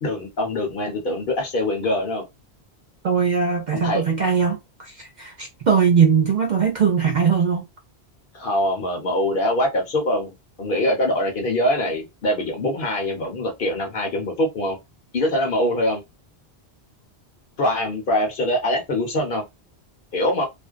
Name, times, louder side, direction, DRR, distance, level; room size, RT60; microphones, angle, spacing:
voice 1, 0.0-2.2 3.7-4.0 8.3-14.8 15.1-16.0 17.6-19.4 20.1-20.4, left 1 dB, 55° left, 0.9 m, -23 dB
voice 2, 3.0-7.6, right 6 dB, 60° right, 0.5 m, -20 dB
2.5 x 2.1 x 2.3 m
omnidirectional pair, 1.1 m